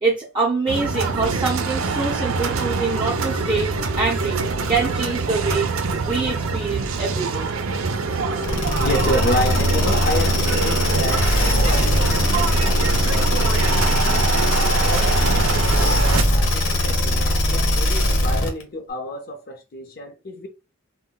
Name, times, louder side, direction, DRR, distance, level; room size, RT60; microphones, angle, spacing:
voice 1, 0.0-7.5, right 4 dB, 20° right, 0.6 m, -25 dB
sound 1, 0.7-16.2, right 4 dB, 70° right, 0.5 m, -24 dB
sound 2, 8.4-18.6, left 1 dB, 65° left, 1.1 m, -20 dB
voice 2, 8.8-14.4 14.8-20.5, left 1 dB, 45° left, 0.7 m, -30 dB
2.2 x 2.1 x 3.8 m
head